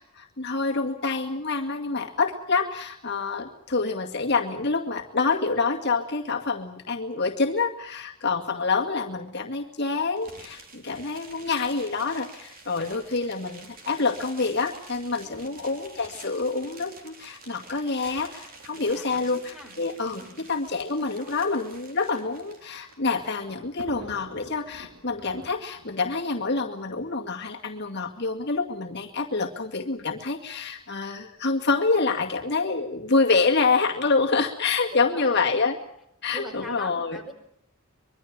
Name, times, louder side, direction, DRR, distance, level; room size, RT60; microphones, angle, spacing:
voice 1, 0.0-20.2 20.5-35.8 36.2-37.2, left 4 dB, 50° left, 1 dB, 2.1 m, -27 dB
sound 1, 10.2-22.9, right 3 dB, 40° right, 3.9 m, -48 dB
voice 2, 15.2-15.6 18.7-19.8 20.2-20.4 34.9-35.7 36.3-37.3, left 1 dB, ahead, 3 dB, 5.1 m, -42 dB
Thunder, 22.3-27.7 28.5-28.6 28.8-28.9 30.0-30.3, right 2 dB, 75° right, 3.0 m, -47 dB
25.0 x 23.0 x 7.4 m, 0.76 s
head